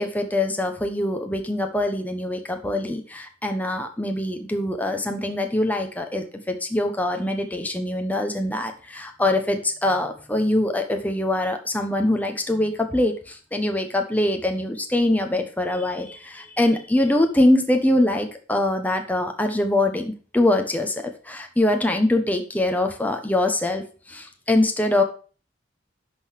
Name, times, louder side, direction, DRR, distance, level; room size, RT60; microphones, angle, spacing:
voice 1, 0.0-23.8 24.1-25.0, left 1 dB, 10° left, 4 dB, 1.1 m, -23 dB
11.5 x 4.0 x 6.5 m, 0.38 s
head